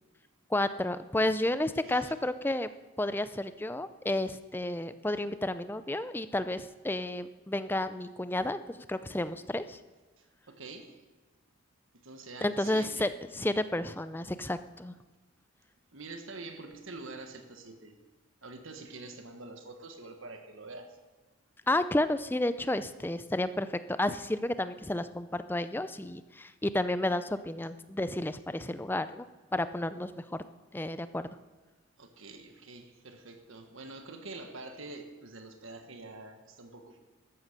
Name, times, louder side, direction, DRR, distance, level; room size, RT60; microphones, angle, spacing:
voice 1, 0.5-2.7 3.0-9.8 12.4-14.9 21.7-29.3 29.5-30.4 30.7-31.3, left 1 dB, 10° left, 12 dB, 0.4 m, -31 dB
voice 2, 10.2-11.0 11.9-13.1 15.9-18.0 18.4-21.0 32.0-37.0, right 3 dB, 70° right, 6 dB, 1.4 m, -46 dB
13.5 x 10.5 x 6.7 m, 1.2 s
head